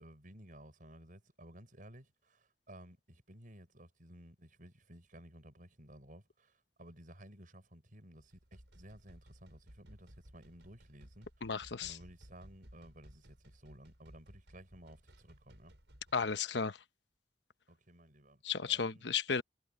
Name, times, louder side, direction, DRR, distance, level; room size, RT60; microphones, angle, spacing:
voice 1, 0.0-11.5 11.8-15.7 17.7-19.1, right 1 dB, 50° right, 6.2 m, -56 dB
sound 1, 8.1-16.3, equal, 90° right, 5.9 m, -59 dB
voice 2, 11.4-12.0 16.1-16.8 18.4-19.4, left 6 dB, 80° left, 1.0 m, -34 dB
head